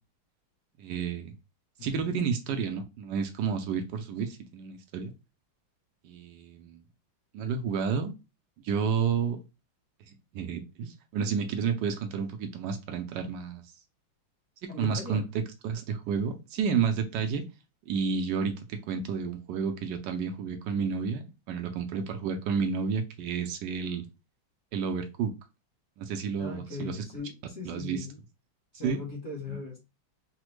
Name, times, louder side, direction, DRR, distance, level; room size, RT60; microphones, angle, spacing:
voice 1, 0.8-1.3 1.8-5.1 6.0-6.8 7.3-8.1 8.6-9.4 10.3-13.6 14.6-15.2 15.6-17.4 17.9-24.1 24.7-25.3 26.0-27.0 27.6-28.1 28.8-29.0 29.5-29.6, right 6 dB, 75° right, 1.0 m, -31 dB
voice 2, 1.8-2.2 14.7-15.3 26.4-28.2 28.7-29.8, left 4 dB, 50° left, 1.0 m, -39 dB
4.0 x 2.1 x 3.0 m
omnidirectional pair, 2.3 m